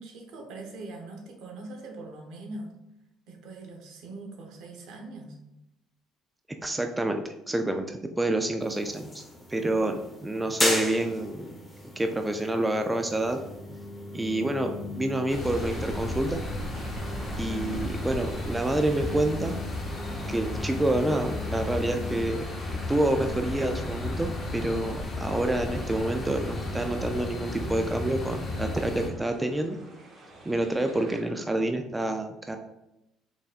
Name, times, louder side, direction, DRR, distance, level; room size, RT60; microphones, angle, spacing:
voice 1, 0.0-2.7 3.3-5.4, right 2 dB, 70° right, 2 dB, 0.9 m, -42 dB
voice 2, 6.6-9.2 9.5-11.6 12.0-13.4 14.1-16.4 17.4-19.6 20.3-29.8 30.4-32.6, right 1 dB, 15° right, 5 dB, 0.3 m, -28 dB
sound 1, 8.6-22.3, left 1 dB, 10° left, 0.9 m, -37 dB
sound 2, 15.3-29.1, left 1 dB, 35° left, 0.9 m, -34 dB
sound 3, 15.3-24.3 24.8-24.9 26.4-31.3, right 2 dB, 45° right, 1.0 m, -50 dB
4.0 x 3.3 x 2.4 m, 0.89 s
supercardioid pair, 85°, 0 cm